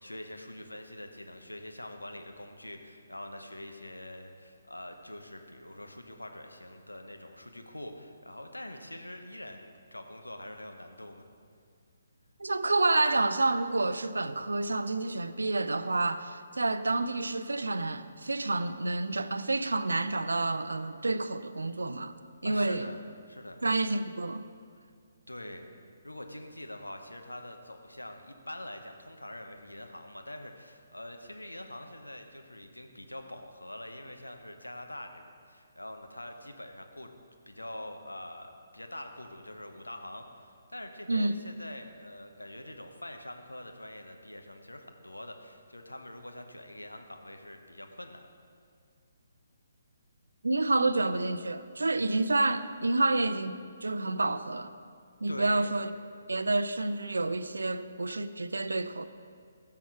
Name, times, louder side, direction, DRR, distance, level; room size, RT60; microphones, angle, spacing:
voice 1, 0.0-11.3 22.4-23.0 23.3-23.6 25.3-25.7 26.0-37.1 37.5-48.3 55.3-55.7, left 1 dB, 90° left, 5 dB, 0.9 m, -44 dB
voice 2, 12.4-22.1 22.4-22.9 23.6-24.4 41.1-41.4 50.4-54.8 55.2-55.9 56.3-59.0, right 2 dB, 75° right, 12 dB, 0.4 m, -29 dB
11.0 x 5.9 x 4.7 m, 2.2 s
figure-of-eight pair, 140°, 0 cm